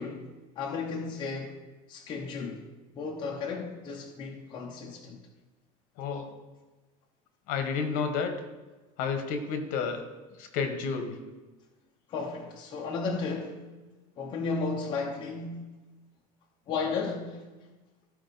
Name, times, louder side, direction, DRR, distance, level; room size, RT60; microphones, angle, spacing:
voice 1, 0.0-1.6 1.9-2.7 2.9-5.2 12.1-13.7 14.2-15.8 16.7-17.4, left 4 dB, 30° left, 0.8 m, -34 dB
voice 2, 6.0-6.3 7.5-8.3 9.0-10.0 10.4-11.2, left 5 dB, 55° left, 1.2 m, -30 dB
14.0 x 4.7 x 4.0 m
cardioid pair, 175°, 17 cm